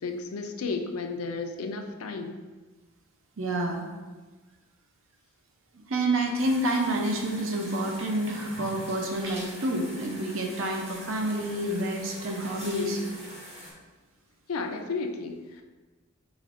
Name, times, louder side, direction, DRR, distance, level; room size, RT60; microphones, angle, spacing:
voice 1, 0.0-2.4 12.6-13.2 14.5-15.6, left 3 dB, 85° left, 5 dB, 0.5 m, -33 dB
voice 2, 3.4-3.8 5.9-13.0, right 1 dB, 65° right, 2 dB, 0.6 m, -28 dB
sound 1, 6.4-13.7, right 1 dB, 30° right, 0.9 m, -43 dB
5.0 x 4.1 x 2.5 m, 1.3 s
head